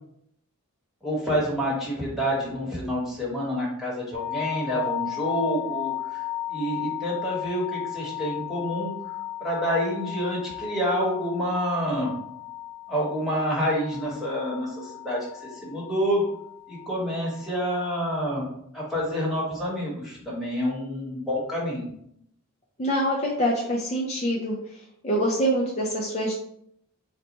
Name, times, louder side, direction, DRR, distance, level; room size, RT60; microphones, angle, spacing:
voice 1, 1.0-6.2 6.5-12.1 12.9-16.2 16.7-18.5 18.7-21.9, equal, ahead, -6 dB, 1.2 m, -28 dB
sound 1, 4.1-18.2, left 14 dB, 55° right, 0.5 m, -35 dB
voice 2, 22.8-24.5 25.0-26.3, equal, 30° left, -3 dB, 0.5 m, -25 dB
4.1 x 2.2 x 4.1 m, 0.71 s
head